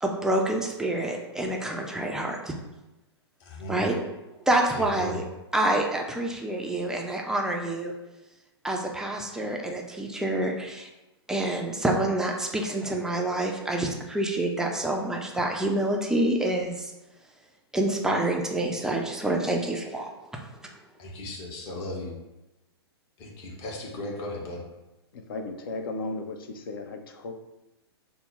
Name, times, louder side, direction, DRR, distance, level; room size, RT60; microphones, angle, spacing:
voice 1, 0.0-2.5 3.7-4.0 4.5-5.2 5.5-7.9 8.6-10.9 11.3-16.9 17.7-20.1, right 1 dB, 5° right, 0 dB, 0.3 m, -27 dB
voice 2, 3.4-3.9 4.7-5.2 21.0-22.1 23.2-24.6, left 1 dB, 35° left, -2 dB, 1.0 m, -36 dB
voice 3, 25.1-27.3, left 3 dB, 55° left, 6 dB, 0.5 m, -35 dB
4.2 x 2.0 x 3.5 m, 1.0 s
figure-of-eight pair, 115°, 14 cm